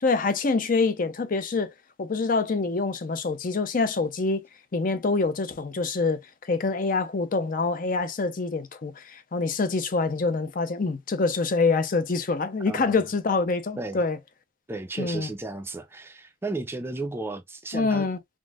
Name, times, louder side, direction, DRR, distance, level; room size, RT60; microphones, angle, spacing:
voice 1, 0.0-1.7 2.0-4.4 4.7-14.2 15.0-15.3 17.7-18.2, left 3 dB, 45° left, 0.5 m, -26 dB
voice 2, 12.7-13.0 13.8-14.0 14.7-18.1, right 2 dB, 10° right, 0.4 m, -34 dB
3.7 x 2.6 x 2.3 m
head